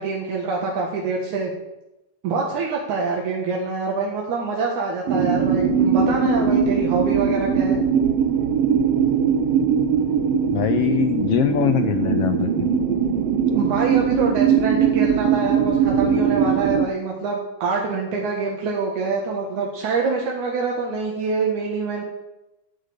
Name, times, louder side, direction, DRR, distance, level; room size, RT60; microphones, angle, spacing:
voice 1, 0.0-1.5 2.2-7.8 13.5-22.0, right 4 dB, 85° right, -1 dB, 3.1 m, -25 dB
sound 1, 5.1-16.9, right 7 dB, 65° right, 1.8 m, -20 dB
voice 2, 10.5-12.7, left 11 dB, 80° left, 9 dB, 1.4 m, -22 dB
12.0 x 8.2 x 8.0 m, 0.94 s
omnidirectional pair, 3.3 m